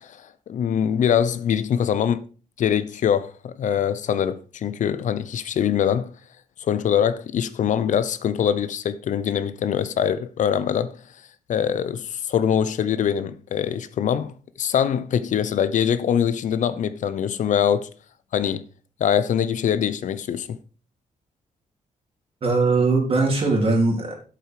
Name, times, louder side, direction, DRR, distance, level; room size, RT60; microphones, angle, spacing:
voice 1, 0.0-2.2 2.6-6.1 6.6-11.0 11.5-14.3 14.6-17.9 18.3-18.7 19.0-20.6, left 8 dB, 70° left, 0.7 m, -23 dB
voice 2, 22.4-24.1, right 3 dB, 45° right, 3.6 m, -20 dB
8.4 x 7.8 x 4.7 m
wide cardioid pair, 125°, 13 cm